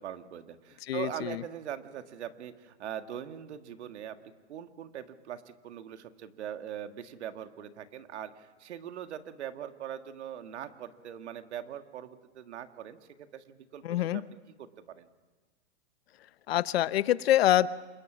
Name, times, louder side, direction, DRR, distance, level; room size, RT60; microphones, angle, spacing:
voice 1, 0.0-4.2 4.5-14.2 14.6-15.1, right 10 dB, 70° right, 8 dB, 1.8 m, -41 dB
voice 2, 0.9-1.4 13.8-14.2 16.5-17.7, left 13 dB, 60° left, 16 dB, 0.8 m, -25 dB
27.0 x 22.0 x 6.2 m, 1.3 s
hypercardioid pair, 160°, 35 cm